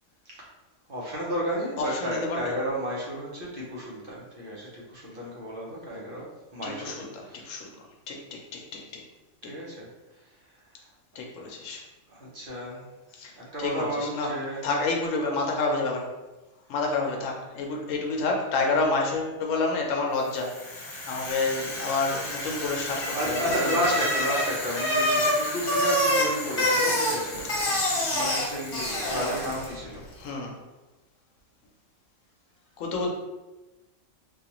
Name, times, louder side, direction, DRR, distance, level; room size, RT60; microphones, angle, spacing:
voice 1, 0.9-6.2 6.5-6.9 7.2-7.5 9.4-9.9 12.1-12.9 13.4-14.6 23.1-30.0, equal, 50° right, -5 dB, 1.0 m, -32 dB
voice 2, 1.9-2.5 6.6-7.7 8.1-8.8 9.4-9.5 11.2-11.8 13.1-13.3 13.6-14.3 14.6-16.1 16.7-23.8 27.7-27.8 28.1-28.2 30.2-30.6 32.8-33.1, left 3 dB, 75° left, 1 dB, 1.0 m, -29 dB
Bicycle, 20.4-29.8, left 1 dB, 45° left, 1.1 m, -27 dB
3.9 x 2.4 x 2.9 m, 1.1 s
omnidirectional pair, 1.3 m